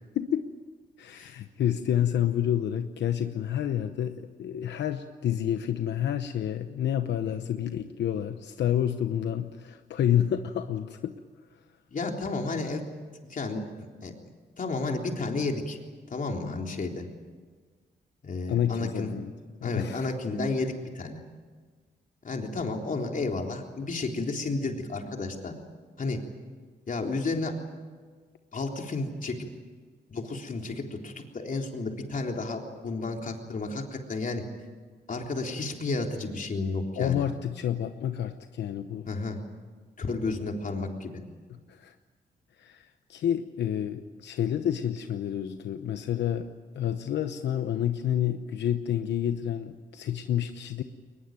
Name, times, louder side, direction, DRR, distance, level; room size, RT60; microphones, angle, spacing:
voice 1, 0.1-0.5 1.0-11.1 18.5-19.3 19.6-20.1 37.0-39.1 41.5-41.9 42.6-46.5 46.7-50.8, left 10 dB, 90° left, 8 dB, 0.9 m, -29 dB
voice 2, 11.9-12.8 13.3-13.6 14.0-14.1 14.6-15.8 16.1-17.1 18.2-19.2 19.6-21.2 22.2-25.5 26.0-26.2 26.9-27.5 28.5-29.5 30.1-34.4 35.1-37.3 39.1-39.4 40.0-41.2, left 3 dB, 50° left, 2 dB, 3.6 m, -32 dB
22.0 x 21.0 x 9.1 m, 1.5 s
cardioid pair, 85°, 18 cm